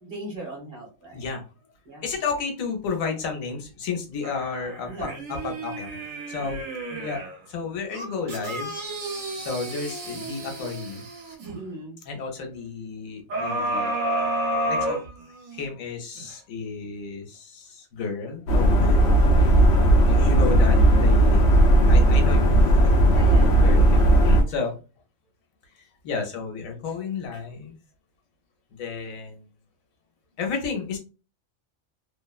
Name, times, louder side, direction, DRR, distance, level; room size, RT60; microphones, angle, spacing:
voice 1, 0.0-1.3 1.8-2.1 4.9-5.4 6.4-6.6 11.5-12.0 19.0-19.4 23.1-24.1, right 2 dB, 45° right, -2 dB, 1.0 m, -39 dB
voice 2, 1.1-1.4 2.0-5.9 6.3-6.6 6.9-8.7 9.4-11.0 12.1-13.9 14.6-15.0 15.5-19.1 20.1-21.4 21.9-22.9 23.2-24.8 26.0-27.8 28.8-29.5 30.4-31.0, left 5 dB, 80° left, 3 dB, 1.1 m, -32 dB
sound 1, 4.2-7.4 7.9-11.6 13.3-15.6 16.2-16.3, right 1 dB, 75° right, 1.1 m, -31 dB
sound 2, 18.5-24.4, right 1 dB, 65° left, 0.7 m, -16 dB
2.7 x 2.0 x 2.3 m, 0.33 s
omnidirectional pair, 1.4 m